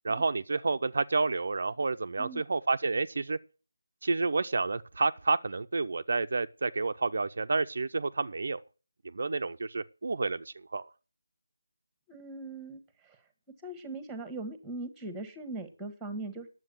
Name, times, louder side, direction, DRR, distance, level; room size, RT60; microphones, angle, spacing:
voice 1, 0.0-3.4 4.0-8.6 9.1-10.9, right 3 dB, 55° right, 0.5 m, -30 dB
voice 2, 12.1-13.2 13.6-16.5, right 2 dB, 5° right, 1.3 m, -40 dB
9.9 x 7.7 x 7.6 m
figure-of-eight pair, 170°, 0 cm